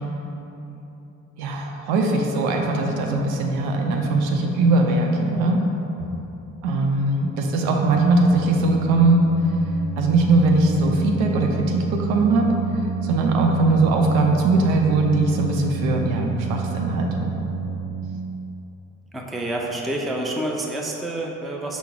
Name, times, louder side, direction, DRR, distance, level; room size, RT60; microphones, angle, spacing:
voice 1, 1.4-5.6 6.6-9.2 10.0-12.5 13.0-17.3, right 3 dB, 70° right, 2 dB, 0.6 m, -20 dB
Organ, 7.7-18.5, right 4 dB, 75° left, 0.5 m, -29 dB
voice 2, 19.1-21.8, right 1 dB, ahead, -1 dB, 0.4 m, -28 dB
5.6 x 2.0 x 4.7 m, 2.9 s
hypercardioid pair, 50°, 40 cm